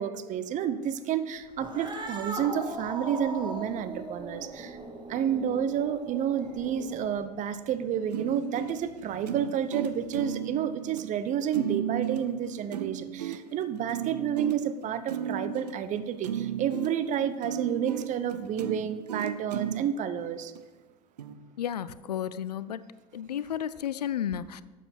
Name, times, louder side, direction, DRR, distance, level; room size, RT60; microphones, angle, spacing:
voice 1, 0.0-4.8 5.1-20.5, right 8 dB, 35° right, 12 dB, 0.8 m, -30 dB
Cat, 1.5-7.2, right 2 dB, 20° right, 1.8 m, -39 dB
sound 1, 8.1-19.9 20.6-20.7 21.2-21.4, right 9 dB, 75° right, 0.6 m, -35 dB
voice 2, 21.6-22.8 23.1-24.6, left 9 dB, 75° left, 17 dB, 0.4 m, -32 dB
12.0 x 7.5 x 4.4 m, 1.3 s
figure-of-eight pair, 75°, 21 cm